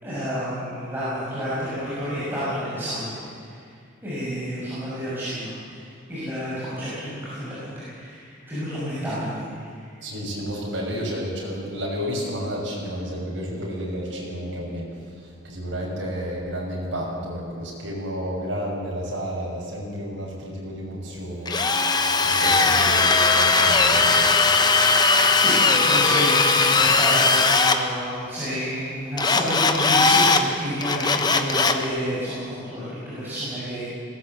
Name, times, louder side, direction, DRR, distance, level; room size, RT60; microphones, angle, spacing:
voice 1, 0.0-3.1 4.0-5.7 6.1-9.5 22.4-22.6 25.4-33.8, equal, 10° right, -11 dB, 6.5 m, -30 dB
voice 2, 10.0-14.9 15.2-21.7 22.2-24.3, equal, 65° right, -3 dB, 6.4 m, -31 dB
Drill, 21.5-27.8 29.2-30.4 30.8-31.8, left 4 dB, 20° left, 1.0 m, -19 dB
21.0 x 17.5 x 8.0 m, 2.3 s
head